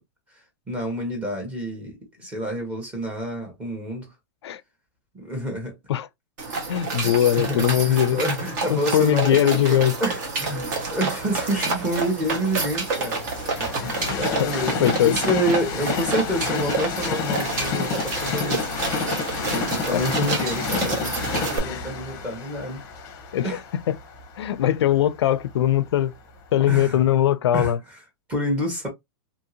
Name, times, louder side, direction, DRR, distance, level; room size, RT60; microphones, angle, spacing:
voice 1, 0.7-4.1 5.1-5.7 7.0-10.7 10.9-13.3 13.5-18.7 19.4-22.8 23.4-23.6 26.7-27.0 27.5-28.0 28.3-28.9, equal, 10° right, 1.0 m, -28 dB
sound 1, 6.4-21.6, right 3 dB, 45° right, 1.2 m, -29 dB
voice 2, 6.7-8.2 8.7-10.0 14.1-14.5 14.8-15.2 19.9-20.1 21.6-21.9 23.3-24.0 24.4-26.1 26.5-27.8, left 11 dB, 90° left, 0.4 m, -21 dB
Train, 10.4-26.4 27.0-27.1, left 5 dB, 25° left, 0.7 m, -30 dB
2.8 x 2.7 x 2.7 m
supercardioid pair, 170°, 14 cm